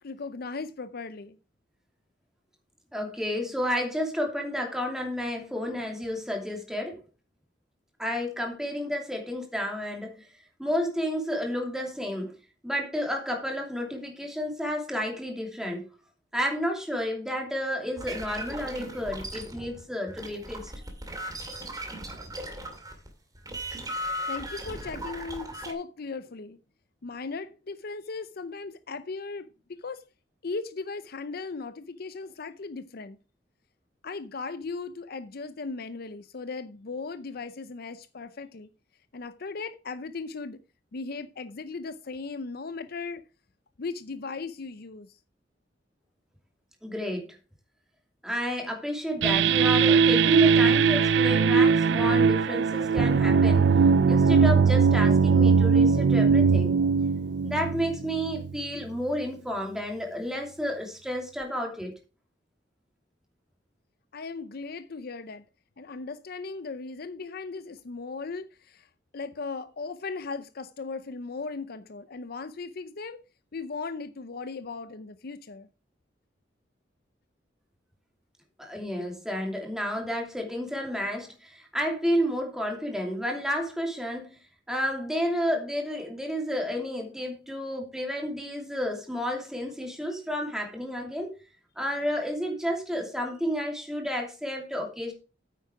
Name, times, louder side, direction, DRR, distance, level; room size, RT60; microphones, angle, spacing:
voice 1, 0.0-1.4 24.3-26.6 27.0-29.5 29.8-30.0 30.4-33.2 34.0-38.7 39.1-40.6 40.9-43.2 43.8-45.2 64.1-65.4 65.8-68.9 69.1-73.2 73.5-75.7, left 4 dB, 60° left, 0.6 m, -37 dB
voice 2, 2.9-7.0 8.0-10.2 10.6-12.3 12.6-15.9 16.3-20.7 46.8-47.4 48.2-53.7 54.1-56.7 57.4-61.9 78.6-84.4 84.7-91.4 91.8-95.1, equal, 5° right, 2.8 m, -31 dB
sound 1, 18.0-23.1 23.3-25.7, equal, 20° right, 2.4 m, -37 dB
sound 2, 49.2-58.6, right 5 dB, 70° right, 0.4 m, -20 dB
9.3 x 8.3 x 4.8 m
head